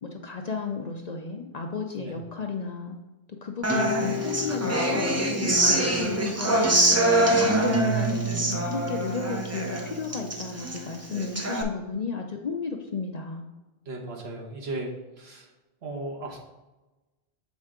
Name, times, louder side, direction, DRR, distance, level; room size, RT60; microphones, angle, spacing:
voice 1, 0.0-3.0 3.4-7.0 7.3-13.4, left 5 dB, 50° left, 3 dB, 0.6 m, -33 dB
Human voice / Acoustic guitar, 3.6-11.6, right 1 dB, 20° right, 0.5 m, -24 dB
voice 2, 13.8-14.9 15.2-15.5 15.8-16.4, right 2 dB, 75° right, 0 dB, 1.4 m, -36 dB
7.3 x 4.3 x 3.6 m, 1.1 s
omnidirectional pair, 1.1 m